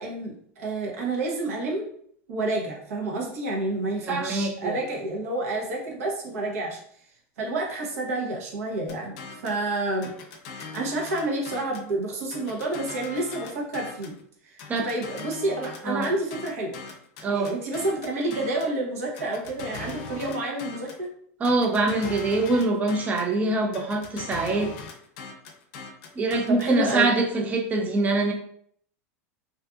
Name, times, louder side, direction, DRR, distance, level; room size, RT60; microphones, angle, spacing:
voice 1, 0.0-1.9 2.3-6.8 7.4-10.1 10.5-14.1 14.5-16.8 17.3-21.1 26.5-27.1, right 2 dB, 80° right, 0 dB, 0.8 m, -29 dB
voice 2, 4.0-4.8 14.7-14.9 15.8-16.1 17.2-17.6 21.4-24.7 26.2-28.3, right 2 dB, 20° right, 2 dB, 0.4 m, -24 dB
sound 1, 8.9-9.6 10.0-11.9 12.3-14.2 14.6-18.8 19.2-21.1 21.4-23.3 23.7-27.0, left 4 dB, 60° left, 0.5 m, -40 dB
2.5 x 2.4 x 2.3 m, 0.64 s
hypercardioid pair, 105°, 8 cm